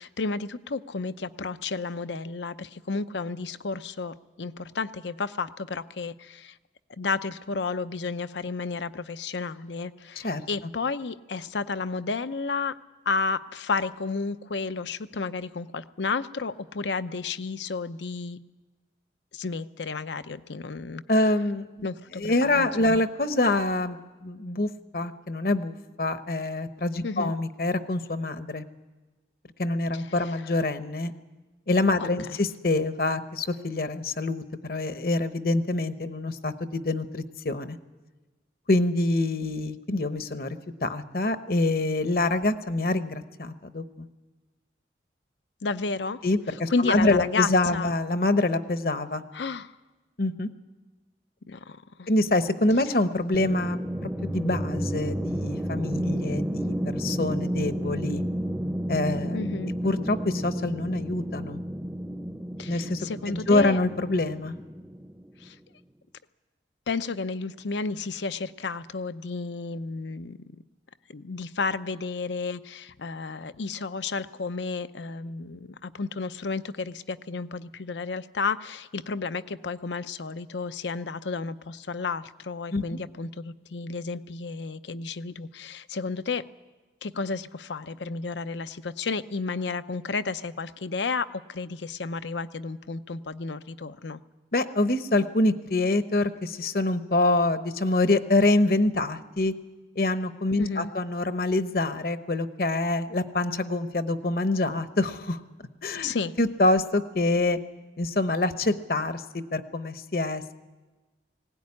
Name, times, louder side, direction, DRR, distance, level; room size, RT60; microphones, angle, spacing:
voice 1, 0.0-6.6 7.0-12.8 13.1-18.4 19.3-21.0 21.8-23.0 27.0-27.3 29.9-30.0 32.0-32.1 45.6-46.2 46.7-47.9 49.3-49.7 51.5-52.1 59.3-59.7 62.6-63.8 65.4-65.6 66.9-70.4 71.1-86.4 87.0-94.2 100.6-100.9 106.0-106.3, left 4 dB, 80° left, 12 dB, 0.7 m, -32 dB
voice 2, 21.1-21.9 22.1-28.7 29.6-31.1 31.7-37.8 38.7-44.1 46.2-49.2 50.2-50.5 52.1-58.2 58.9-59.4 59.8-61.6 62.7-64.6 82.7-83.0 94.5-99.5 100.0-105.4 105.8-107.6 108.0-110.5, left 2 dB, 55° left, 10 dB, 0.9 m, -26 dB
sound 1, 53.3-65.5, equal, 5° right, 0.7 m, -31 dB
19.5 x 17.5 x 9.8 m, 1.2 s
head